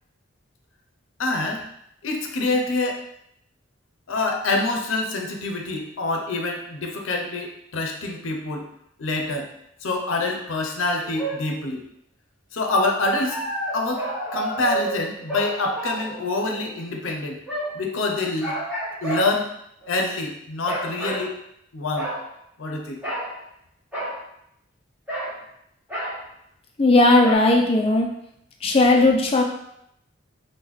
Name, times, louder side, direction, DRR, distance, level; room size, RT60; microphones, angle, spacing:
voice 1, 1.2-1.6 2.0-3.0 4.1-8.7 9.0-9.5 9.8-11.8 12.5-13.4 13.7-14.1 14.3-17.4 17.7-18.6 19.0-19.5 19.9-21.4 21.7-22.1 22.6-23.0, left 2 dB, 75° left, 2 dB, 0.5 m, -26 dB
sound 1, 11.0-11.4 13.1-16.7 17.5-17.8 18.4-19.3 19.8-20.1 20.7-21.3 22.0-22.2 23.0-23.3 23.9-24.2 25.1-25.4 25.9-26.2 27.2-27.4, right 1 dB, 5° right, 0.9 m, -30 dB
voice 2, 26.8-28.1 28.6-29.4, left 2 dB, 30° left, 2 dB, 0.3 m, -17 dB
3.5 x 2.2 x 3.0 m, 0.76 s
head